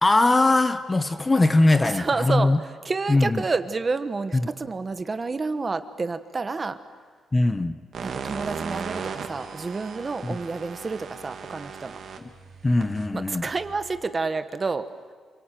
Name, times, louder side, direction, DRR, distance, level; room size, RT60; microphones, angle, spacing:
voice 1, 0.0-2.6 3.1-3.4 4.3-4.5 7.3-7.8 10.2-10.4 12.2-12.3 12.6-13.5, left 2 dB, 15° left, 10 dB, 1.0 m, -21 dB
voice 2, 1.8-2.5 2.8-6.8 8.0-12.0 13.1-14.9, right 4 dB, 25° right, 10 dB, 1.2 m, -29 dB
sound 1, 7.9-14.0, right 6 dB, 55° right, 2.4 m, -37 dB
27.5 x 23.5 x 9.2 m, 1.5 s
cardioid pair, 135°, 0 cm